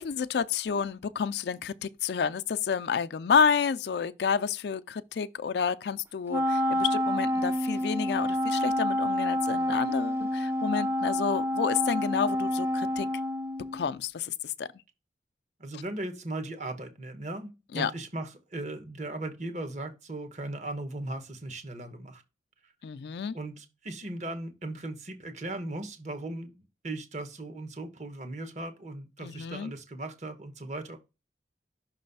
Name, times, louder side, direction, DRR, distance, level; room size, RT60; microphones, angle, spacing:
voice 1, 0.0-13.1 13.7-14.7 17.7-17.9 22.8-23.3 29.2-29.7, left 6 dB, 70° left, 0.4 m, -30 dB
Wind instrument woodwind instrument, 6.3-13.9, left 1 dB, 15° right, 0.5 m, -28 dB
voice 2, 15.6-22.2 22.6-22.7 23.3-31.0, right 2 dB, 40° right, 1.1 m, -38 dB
6.0 x 3.1 x 5.4 m
head